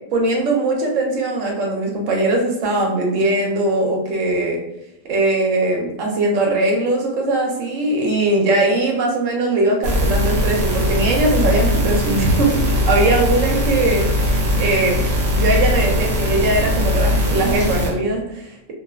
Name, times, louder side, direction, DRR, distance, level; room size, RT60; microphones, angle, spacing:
voice 1, 0.1-4.6 5.0-15.0 15.3-18.7, right 2 dB, 85° right, 0 dB, 1.0 m, -20 dB
sound 1, 9.8-17.9, left 1 dB, 60° right, 0.8 m, -20 dB
2.6 x 2.4 x 2.3 m, 0.89 s
omnidirectional pair, 1.3 m